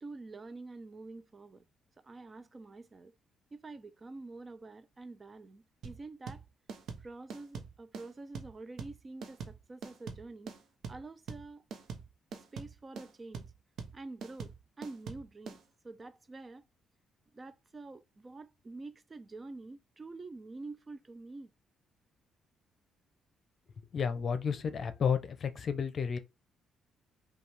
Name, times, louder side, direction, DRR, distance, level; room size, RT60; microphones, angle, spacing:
voice 1, 0.0-1.6 2.0-3.1 3.5-6.4 7.0-10.5 10.9-11.6 12.3-13.5 13.9-15.6 15.8-16.7 17.3-21.5, right 3 dB, 30° right, 0.4 m, -47 dB
sound 1, 5.8-15.6, right 5 dB, 70° right, 0.8 m, -43 dB
voice 2, 23.9-26.2, left 6 dB, 50° left, 0.6 m, -31 dB
5.2 x 2.3 x 3.4 m
cardioid pair, 90°, 0 cm